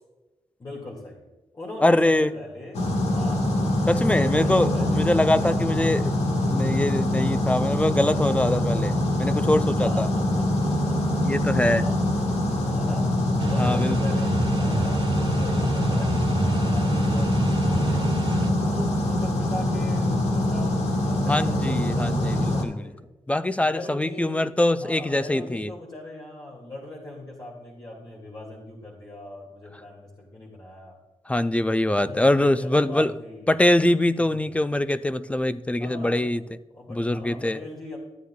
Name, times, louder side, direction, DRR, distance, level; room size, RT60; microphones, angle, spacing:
voice 1, 0.6-1.2 1.5-2.8 3.1-3.5 4.0-5.2 5.4-5.9 9.8-11.2 11.7-12.1 12.7-13.1 13.4-18.1 18.6-23.1 23.6-31.0 31.9-33.6 34.1-34.5 35.8-36.3 36.7-38.0, left 1 dB, 40° left, -4 dB, 2.2 m, -40 dB
voice 2, 1.8-2.3 3.9-6.1 6.5-8.9 9.2-10.1 11.2-11.8 13.6-14.0 21.3-22.9 23.3-25.7 31.3-33.1 33.5-36.4 36.9-37.6, left 1 dB, 10° left, 13 dB, 0.4 m, -23 dB
sound 1, 2.7-22.6, left 1 dB, 80° left, 1.5 m, -24 dB
sound 2, 13.4-18.5, right 3 dB, 50° right, 1.1 m, -29 dB
13.0 x 9.2 x 2.3 m, 1.1 s
cardioid pair, 90°, 11 cm